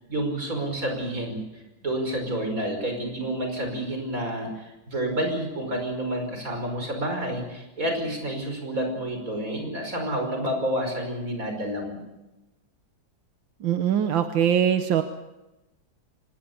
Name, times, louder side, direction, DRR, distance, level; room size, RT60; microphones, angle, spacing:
voice 1, 0.0-12.0, right 1 dB, 45° right, 4 dB, 5.9 m, -29 dB
voice 2, 13.6-15.0, right 9 dB, 85° right, 8 dB, 1.8 m, -22 dB
25.0 x 20.0 x 7.1 m, 1.0 s
omnidirectional pair, 2.1 m